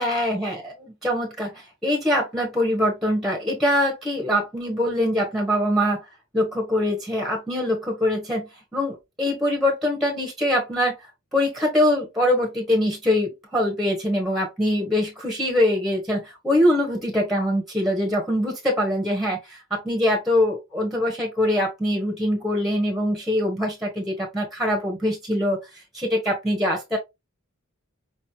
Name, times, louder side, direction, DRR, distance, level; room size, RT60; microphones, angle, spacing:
voice 1, 0.0-6.0 6.3-11.0 11.3-25.6 25.9-27.0, left 1 dB, ahead, 1.2 m, -23 dB
5.2 x 3.2 x 2.8 m
head